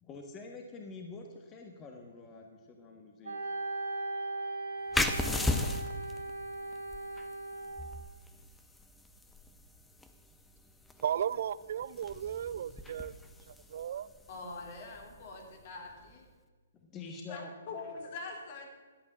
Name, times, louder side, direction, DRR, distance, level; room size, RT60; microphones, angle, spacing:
voice 1, 0.0-3.4 16.8-17.5, left 3 dB, 20° left, 1.5 m, -46 dB
Wind instrument woodwind instrument, 3.2-8.0, right 2 dB, 80° right, 3.0 m, -38 dB
sound 1, 4.9-16.2, left 2 dB, 5° left, 0.8 m, -38 dB
voice 2, 11.0-13.1 13.5-14.1, right 9 dB, 55° right, 0.4 m, -35 dB
voice 3, 14.3-16.3 17.3-18.7, left 3 dB, 45° left, 3.5 m, -44 dB
13.0 x 8.8 x 7.4 m
figure-of-eight pair, 130°, 0 cm